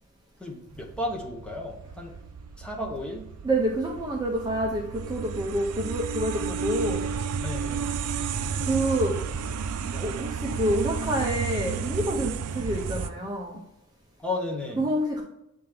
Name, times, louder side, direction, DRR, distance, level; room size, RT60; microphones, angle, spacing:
voice 1, 0.4-2.2 2.6-3.3 7.4-8.0 9.9-10.1 14.2-14.8, left 2 dB, 5° left, 0 dB, 1.0 m, -34 dB
sound 1, 0.7-13.1, right 6 dB, 85° right, 0.4 m, -32 dB
voice 2, 3.4-7.1 8.6-9.2 10.0-13.6 14.8-15.2, right 1 dB, 20° right, -1 dB, 0.7 m, -27 dB
8.3 x 3.4 x 3.5 m, 0.88 s
head